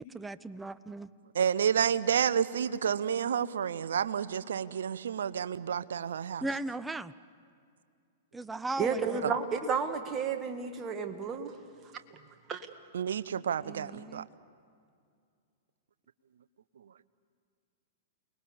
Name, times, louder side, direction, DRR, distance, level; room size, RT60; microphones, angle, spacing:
voice 1, 0.0-1.1 6.4-7.1 8.3-9.3 13.6-14.3, right 2 dB, 10° right, 15 dB, 0.6 m, -37 dB
voice 2, 1.3-6.4 9.2-9.3 12.9-14.2, right 8 dB, 75° right, 14 dB, 0.7 m, -30 dB
voice 3, 8.8-11.5 12.1-12.2 12.5-12.7, right 5 dB, 25° right, 5 dB, 1.9 m, -32 dB
29.5 x 20.5 x 7.2 m, 2.3 s
hypercardioid pair, 110°, 0 cm